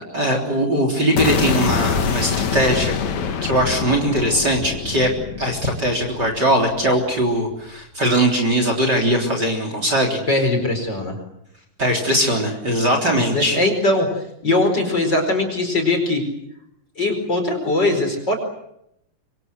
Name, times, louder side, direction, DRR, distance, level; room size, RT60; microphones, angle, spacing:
voice 1, 0.1-3.0 3.4-10.2 11.8-13.6, equal, 30° right, 3 dB, 4.0 m, -20 dB
sound 1, 1.2-7.2, left 6 dB, 60° left, 2.9 m, -25 dB
voice 2, 10.3-11.2 13.1-14.1 14.4-16.2 17.0-18.3, left 2 dB, 30° left, 5 dB, 5.1 m, -20 dB
26.0 x 25.0 x 8.0 m, 0.78 s
omnidirectional pair, 3.8 m